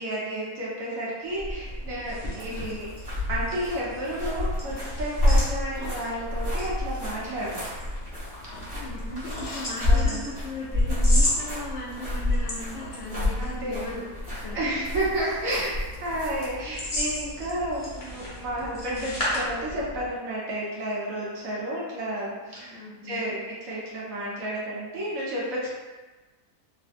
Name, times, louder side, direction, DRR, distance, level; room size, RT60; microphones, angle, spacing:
voice 1, 0.0-2.9 3.3-7.6 8.4-8.6 9.5-10.2 13.4-13.8 14.5-25.7, right 1 dB, 65° right, -6 dB, 1.3 m, -31 dB
sound 1, 1.2-20.2, left 1 dB, 35° left, 0.7 m, -36 dB
sound 2, 2.4-16.5, left 1 dB, 15° right, 1.1 m, -28 dB
voice 2, 2.5-2.8 8.6-14.0 14.3-14.9 18.8-19.2 22.7-23.3, left 1 dB, 65° left, -3 dB, 0.8 m, -38 dB
sound 3, 5.7-6.5 6.9-7.4 8.5-8.9 9.3-9.9 10.4-10.5 11.1-11.5 11.9-12.2 12.8-13.5 13.8-14.3 14.7-14.9 15.1-17.0 17.3-17.6 17.9-18.0 18.4-18.5 18.9-19.1, left 1 dB, 85° left, 1.1 m, -44 dB
3.3 x 2.6 x 2.5 m, 1.2 s
omnidirectional pair, 1.6 m